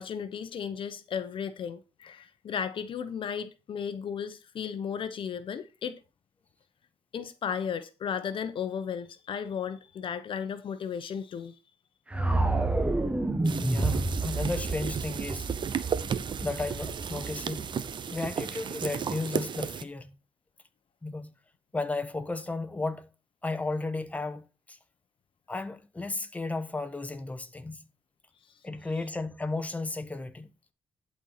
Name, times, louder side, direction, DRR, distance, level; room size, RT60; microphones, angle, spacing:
voice 1, 0.0-6.0 7.1-11.6, left 7 dB, 60° left, 0.9 m, -35 dB
sound 1, 12.1-18.2, right 2 dB, 10° right, 1.3 m, -30 dB
sound 2, 13.4-19.8, right 7 dB, 55° right, 0.9 m, -34 dB
voice 2, 13.6-15.5 16.4-17.7 18.1-20.2 21.0-21.3 21.7-23.1 23.4-24.8 25.5-27.9 28.6-30.5, left 3 dB, 15° left, 1.2 m, -34 dB
11.5 x 4.5 x 5.7 m
cardioid pair, 100°, 10 cm